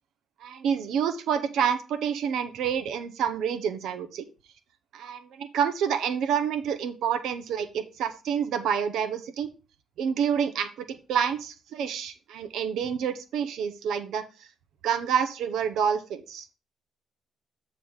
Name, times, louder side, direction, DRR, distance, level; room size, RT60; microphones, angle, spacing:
voice 1, 0.4-4.3 4.9-9.5 10.0-14.2 14.8-16.5, right 7 dB, 80° right, 11 dB, 0.8 m, -28 dB
9.1 x 4.0 x 4.7 m, 0.32 s
cardioid pair, 90°, 0 cm